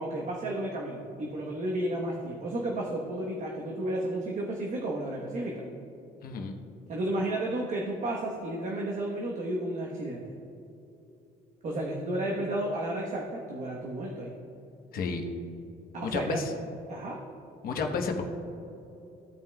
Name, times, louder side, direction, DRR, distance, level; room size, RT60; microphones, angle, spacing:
voice 1, 0.0-5.7 6.9-10.3 11.6-14.3 15.9-16.4 16.9-17.2, right 1 dB, 45° right, -2 dB, 1.1 m, -32 dB
voice 2, 6.2-6.5 14.9-15.2 16.0-16.5 17.6-18.2, left 4 dB, 60° left, 3 dB, 1.0 m, -31 dB
15.5 x 5.5 x 2.3 m, 2.8 s
cardioid pair, 110°, 17 cm